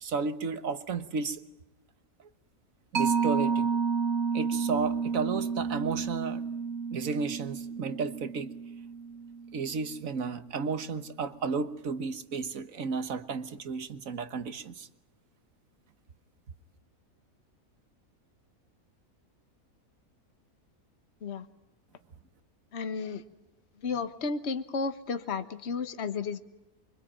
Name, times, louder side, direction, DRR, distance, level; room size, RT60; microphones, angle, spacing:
voice 1, 0.0-1.4 2.9-3.7 4.3-6.4 6.9-8.5 9.5-14.9, right 5 dB, 65° right, 12 dB, 1.7 m, -33 dB
Mallet percussion, 3.0-10.0, right 5 dB, 90° right, 2.1 m, -31 dB
voice 2, 22.7-23.2 23.8-26.4, left 5 dB, 50° left, 10 dB, 1.5 m, -33 dB
26.0 x 24.5 x 8.9 m, 0.96 s
omnidirectional pair, 1.5 m